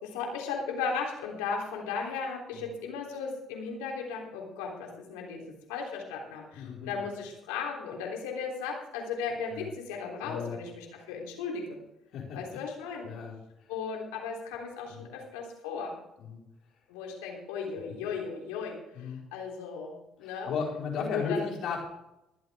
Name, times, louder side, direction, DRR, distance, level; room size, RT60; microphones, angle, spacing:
voice 1, 0.0-11.8 12.3-13.0 13.7-15.9 16.9-18.8 19.3-20.5 21.0-21.5, left 5 dB, 85° left, 0 dB, 3.5 m, -36 dB
voice 2, 6.5-7.1 9.5-9.7 10.2-10.6 12.1-12.4 13.0-13.3 14.9-15.1 16.2-16.4 17.8-18.0 18.9-19.2 20.2-21.8, left 5 dB, 65° left, -2 dB, 4.7 m, -35 dB
23.0 x 8.0 x 3.6 m, 0.87 s
hypercardioid pair, 55°, 0 cm